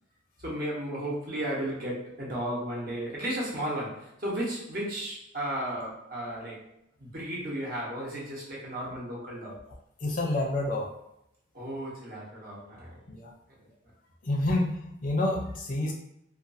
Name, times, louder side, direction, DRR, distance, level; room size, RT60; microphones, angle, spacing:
voice 1, 0.4-6.6 7.0-9.6 11.5-13.0, right 1 dB, 50° right, -5 dB, 0.9 m, -34 dB
voice 2, 10.0-10.9 13.1-13.3 14.2-15.9, left 1 dB, 45° left, -1 dB, 0.5 m, -28 dB
2.5 x 2.3 x 2.6 m, 0.81 s
head